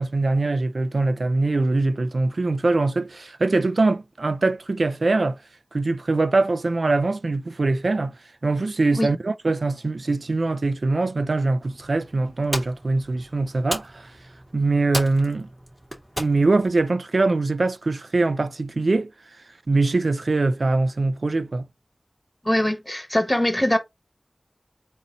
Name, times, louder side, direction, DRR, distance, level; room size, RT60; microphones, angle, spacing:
voice 1, 0.0-5.4 5.7-8.2 8.4-14.1 14.5-15.5 16.2-19.1 19.7-21.7, right 3 dB, 85° right, 0.4 m, -22 dB
sound 1, 11.6-16.9, equal, 25° right, 2.5 m, -36 dB
voice 2, 22.4-23.8, left 1 dB, 15° left, 1.3 m, -22 dB
4.0 x 2.7 x 4.1 m
wide cardioid pair, 45°, 0 cm